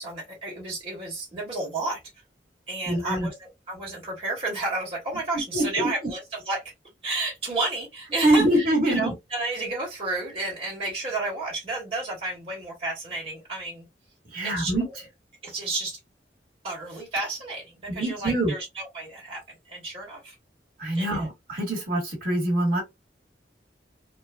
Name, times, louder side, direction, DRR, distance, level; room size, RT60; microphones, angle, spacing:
voice 1, 0.0-2.0 2.7-6.6 7.0-13.9 14.4-14.7 15.4-16.0 16.6-20.4 20.9-21.3, right 2 dB, 35° right, 1.2 m, -31 dB
voice 2, 2.9-3.3 5.5-5.9 8.2-9.1 14.3-14.8 17.9-18.5 20.8-22.8, right 1 dB, 55° right, 1.4 m, -24 dB
3.1 x 2.2 x 2.3 m
head